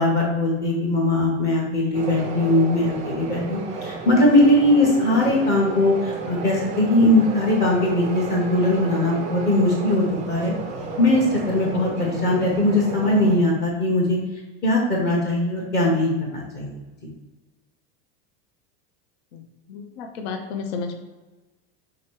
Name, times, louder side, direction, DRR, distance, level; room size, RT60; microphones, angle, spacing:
voice 1, 0.0-10.5 11.0-14.2 14.6-16.7, left 1 dB, 30° left, -2 dB, 0.9 m, -20 dB
sound 1, 1.9-13.4, right 3 dB, 25° right, 0.4 m, -33 dB
voice 2, 19.3-21.0, left 5 dB, 70° left, 5 dB, 0.6 m, -33 dB
3.7 x 2.9 x 4.6 m, 1.2 s
supercardioid pair, 160°, 33 cm